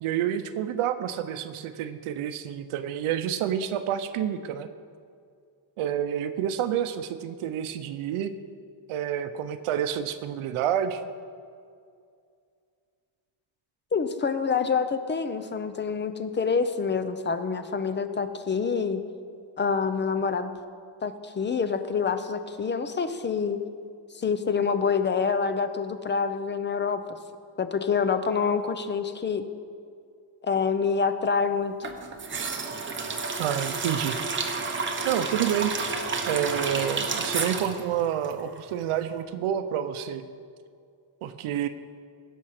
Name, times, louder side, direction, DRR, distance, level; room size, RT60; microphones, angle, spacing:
voice 1, 0.0-4.7 5.8-8.3 8.9-11.0 33.4-34.2 35.0-35.7 36.3-40.3 41.2-41.7, right 10 dB, 85° right, 9 dB, 0.7 m, -28 dB
voice 2, 13.9-19.0 19.6-20.5 21.0-23.6 24.1-27.0 27.6-29.4 30.4-31.7, left 5 dB, 25° left, 10 dB, 0.6 m, -26 dB
sound 1, 31.8-38.9 39.1-39.2, right 4 dB, 25° right, 0.9 m, -31 dB
16.5 x 5.5 x 6.5 m, 2.3 s
cardioid pair, 140°, 49 cm